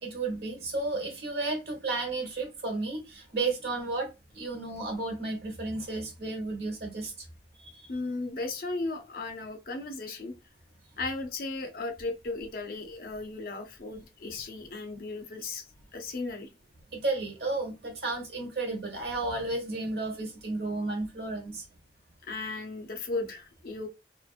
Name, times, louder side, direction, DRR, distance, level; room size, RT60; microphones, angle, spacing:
voice 1, 0.0-4.1 4.3-7.1 7.6-7.8 16.9-21.6, right 3 dB, 65° right, 1.1 m, -33 dB
voice 2, 7.9-10.3 11.0-15.6 15.9-16.5 22.2-23.9, left 3 dB, 55° left, 0.5 m, -36 dB
2.9 x 2.5 x 2.4 m
head